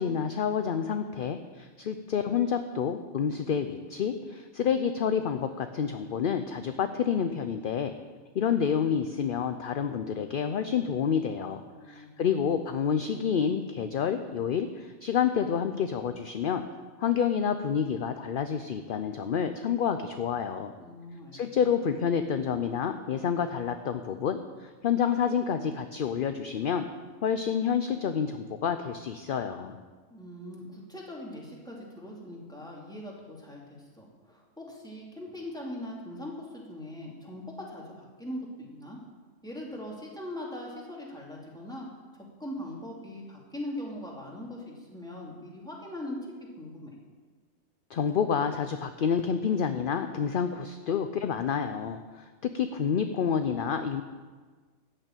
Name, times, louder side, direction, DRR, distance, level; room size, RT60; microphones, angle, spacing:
voice 1, 0.0-7.9 8.3-16.6 17.0-20.7 21.3-26.9 27.2-29.8 47.9-54.0, left 7 dB, 55° left, 8 dB, 0.7 m, -28 dB
voice 2, 11.7-12.1 20.8-21.4 30.1-39.0 39.4-41.9 42.1-46.2 46.6-47.0, left 1 dB, 5° left, -4 dB, 2.7 m, -41 dB
13.5 x 6.7 x 8.9 m, 1.4 s
omnidirectional pair, 1.3 m